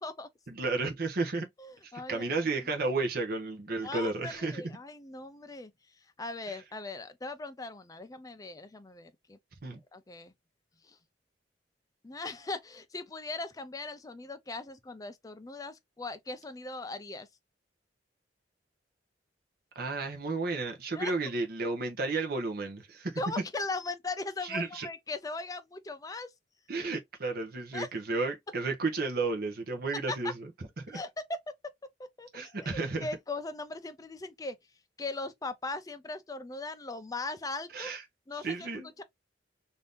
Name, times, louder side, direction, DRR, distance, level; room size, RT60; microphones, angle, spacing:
voice 1, 0.5-1.5 1.8-4.6 6.5-6.6 9.6-9.8 19.8-23.2 24.4-24.9 26.7-30.5 30.8-31.0 32.3-33.1 37.7-38.0 38.4-38.9, right 3 dB, 55° right, 0.7 m, -32 dB
voice 2, 1.6-2.5 3.8-5.7 6.2-9.4 9.9-10.3 10.8-11.0 12.0-17.3 21.0-21.1 23.2-26.3 27.7-27.9 30.1-30.3 30.9-31.4 32.2-32.7 33.0-34.6 35.0-37.9 38.3-39.0, left 3 dB, 20° left, 0.5 m, -39 dB
2.7 x 2.6 x 3.5 m
head